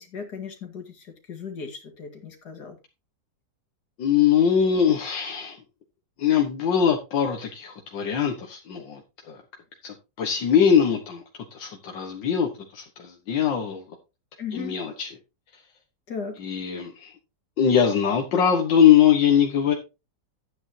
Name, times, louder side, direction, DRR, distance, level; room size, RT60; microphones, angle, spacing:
voice 1, 0.0-2.8 14.4-14.8 16.1-16.4, left 5 dB, 60° left, 2.6 m, -36 dB
voice 2, 4.0-5.6 6.2-9.0 9.3-9.4 9.8-11.2 11.5-13.8 14.5-15.1 16.4-17.1 17.6-19.7, left 8 dB, 85° left, 2.0 m, -22 dB
12.5 x 8.9 x 2.8 m
omnidirectional pair, 1.9 m